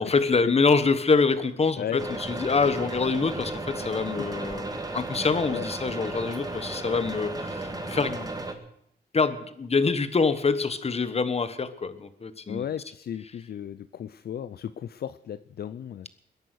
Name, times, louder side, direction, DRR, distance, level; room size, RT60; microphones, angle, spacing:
voice 1, 0.0-8.3 9.1-12.6, left 4 dB, 35° left, 13 dB, 1.3 m, -25 dB
sound 1, 2.0-8.5, right 2 dB, 20° right, 1.9 m, -34 dB
voice 2, 12.5-16.1, left 9 dB, 60° left, 13 dB, 0.5 m, -35 dB
21.5 x 10.5 x 6.4 m, 0.71 s
cardioid pair, 105°, 18 cm